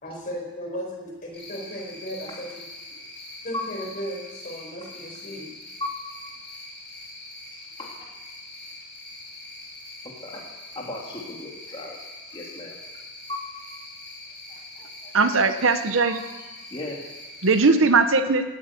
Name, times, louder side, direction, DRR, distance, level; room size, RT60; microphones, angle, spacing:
voice 1, 0.0-2.6 3.4-5.5, equal, 40° left, 0 dB, 4.7 m, -35 dB
Cricket, 1.3-17.7, left 2 dB, 10° left, 6.0 m, -43 dB
voice 2, 7.5-8.1 10.0-10.4 10.7-12.0 12.3-12.8 13.3-13.6 14.5-15.1 16.0-16.4 16.7-17.1, left 2 dB, 25° left, -2 dB, 2.2 m, -37 dB
voice 3, 15.1-16.2 17.4-18.4, right 4 dB, 65° right, 9 dB, 1.0 m, -19 dB
17.0 x 8.7 x 8.5 m, 1.1 s
head